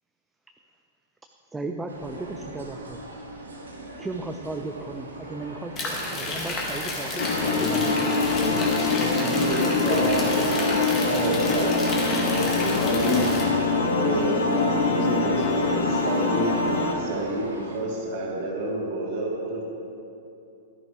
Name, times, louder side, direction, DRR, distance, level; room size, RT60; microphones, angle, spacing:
voice 1, 1.5-3.0 4.0-8.1, right 2 dB, 10° right, 4 dB, 0.5 m, -35 dB
sound 1, 1.9-17.8, right 2 dB, 75° right, 1.3 m, -41 dB
sound 2, 5.8-13.4, left 2 dB, 25° left, 1.9 m, -31 dB
sound 3, 7.2-16.9, left 3 dB, 65° left, 1.3 m, -24 dB
voice 2, 7.5-8.0 8.3-9.4 9.7-13.4 13.8-16.0, left 3 dB, 50° left, 1 dB, 1.5 m, -32 dB
voice 3, 9.3-12.0 12.6-13.3 13.7-14.4 14.8-16.5 16.9-19.6, right 1 dB, 50° right, -2 dB, 2.3 m, -29 dB
12.5 x 10.5 x 3.3 m, 2.7 s
figure-of-eight pair, 105°, 0 cm